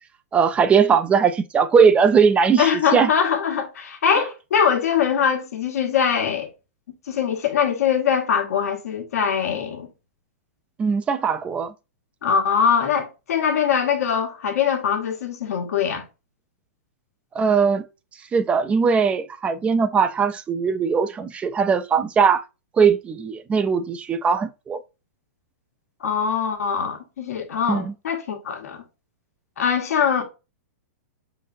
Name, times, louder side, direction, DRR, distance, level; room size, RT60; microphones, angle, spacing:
voice 1, 0.3-3.1 10.8-11.7 17.3-17.8 18.3-22.4 22.8-24.8 27.7-27.9, right 6 dB, 15° right, 0.4 m, -19 dB
voice 2, 2.6-6.5 7.1-9.9 12.2-16.0 26.0-28.8 29.6-30.2, left 7 dB, 80° left, 1.3 m, -22 dB
5.1 x 3.9 x 2.4 m
hypercardioid pair, 140°, 8 cm